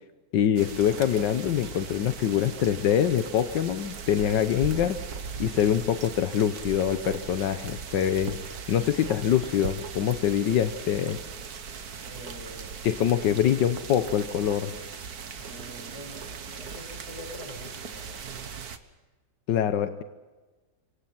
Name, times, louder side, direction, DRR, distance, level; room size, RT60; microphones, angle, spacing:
voice 1, 0.3-5.0 5.4-11.2 12.8-14.7 19.5-20.0, left 9 dB, 85° left, 10 dB, 1.6 m, -24 dB
sound 1, 0.6-18.8, right 6 dB, 60° right, 1.8 m, -39 dB
voice 2, 10.3-10.8 12.1-12.7 15.3-18.3, left 1 dB, 40° left, 2 dB, 8.1 m, -45 dB
27.0 x 25.0 x 5.8 m, 1.3 s
omnidirectional pair, 1.9 m